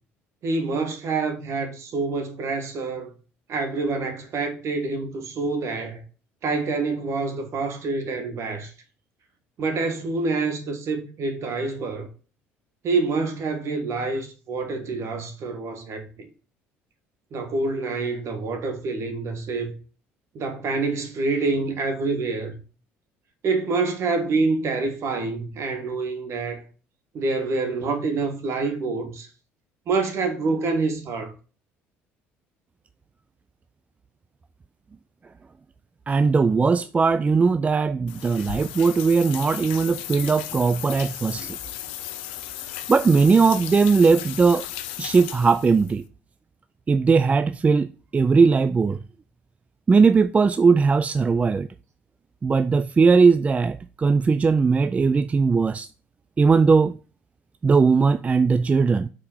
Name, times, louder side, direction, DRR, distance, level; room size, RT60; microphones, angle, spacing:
voice 1, 0.4-3.1 3.5-6.0 6.4-8.7 9.6-12.1 12.8-16.3 17.3-19.7 20.3-22.5 23.4-26.6 27.1-29.3 29.9-31.3, right 3 dB, 55° right, 1.7 m, -27 dB
voice 2, 36.1-41.6 42.9-44.7 45.0-46.0 46.9-49.0 49.9-51.7 52.4-55.9 56.4-57.0 57.6-59.1, right 4 dB, 25° right, 0.3 m, -19 dB
sound 1, 38.1-45.9, left 12 dB, 85° left, 0.6 m, -35 dB
5.2 x 4.3 x 5.7 m
supercardioid pair, 75°, 6 cm